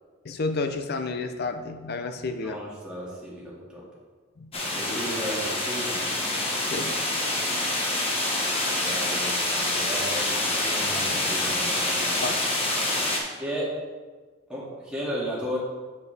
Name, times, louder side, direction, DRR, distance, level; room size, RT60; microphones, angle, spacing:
voice 1, 0.2-2.6 4.4-4.5 6.6-6.9 12.2-12.4 13.2-13.3, left 3 dB, 50° left, 7 dB, 0.5 m, -31 dB
voice 2, 2.4-3.8 4.7-6.0 8.7-12.2 13.4-13.8 14.5-15.6, equal, 5° right, -7 dB, 1.9 m, -34 dB
sound 1, 4.5-13.2, left 2 dB, 30° left, 1.0 m, -26 dB
7.2 x 6.7 x 3.3 m, 1.4 s
head